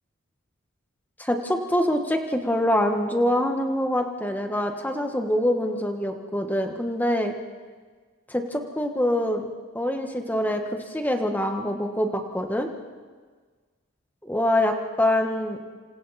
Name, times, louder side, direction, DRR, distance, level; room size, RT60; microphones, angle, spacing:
voice 1, 1.2-7.3 8.3-9.5 9.7-10.6 10.9-12.7 14.2-15.6, left 1 dB, 10° left, 4 dB, 1.6 m, -25 dB
27.0 x 26.5 x 4.3 m, 1.5 s
head